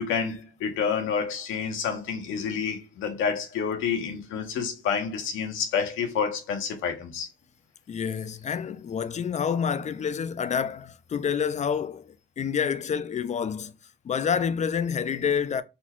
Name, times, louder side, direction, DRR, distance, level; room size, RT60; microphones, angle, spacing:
voice 1, 0.0-7.3, left 6 dB, 90° left, 1.1 m, -29 dB
voice 2, 7.9-13.7 14.0-15.6, left 7 dB, 35° left, 0.4 m, -28 dB
4.3 x 2.3 x 4.3 m
cardioid pair, 90°, 20 cm